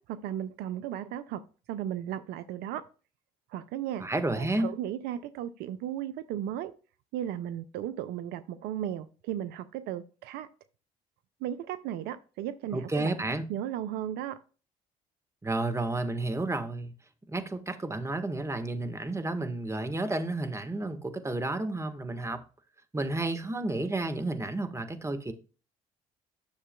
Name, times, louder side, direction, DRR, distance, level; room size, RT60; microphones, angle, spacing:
voice 1, 0.0-1.4 1.7-2.8 3.5-4.0 4.4-6.7 7.1-10.5 11.4-13.2 13.5-14.4, right 11 dB, 70° right, 0.5 m, -35 dB
voice 2, 4.0-4.7 12.7-13.5 15.4-16.9 17.3-22.4 22.9-25.3, right 2 dB, 15° right, 1.4 m, -31 dB
10.5 x 6.7 x 2.2 m
hypercardioid pair, 55°, 17 cm